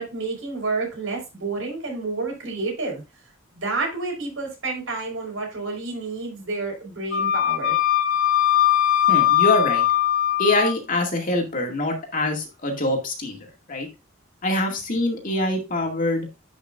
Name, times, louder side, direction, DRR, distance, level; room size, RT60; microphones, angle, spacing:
voice 1, 0.0-3.0 3.5-7.8, right 3 dB, 80° right, 0 dB, 4.6 m, -29 dB
Wind instrument woodwind instrument, 7.1-10.8, left 11 dB, 75° left, 0.7 m, -20 dB
voice 2, 9.1-9.8 10.4-13.9 14.4-16.3, left 1 dB, 40° left, 2 dB, 2.2 m, -24 dB
11.0 x 5.7 x 2.5 m, 0.26 s
head